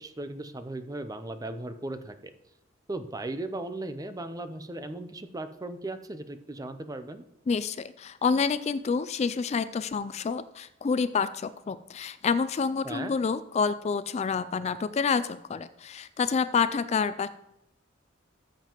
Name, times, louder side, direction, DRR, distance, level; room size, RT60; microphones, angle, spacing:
voice 1, 0.0-2.3 2.9-7.2 12.8-13.1, right 2 dB, 20° right, 10 dB, 0.6 m, -37 dB
voice 2, 7.5-17.3, left 5 dB, 35° left, 13 dB, 0.3 m, -28 dB
14.0 x 7.5 x 3.0 m, 0.83 s
head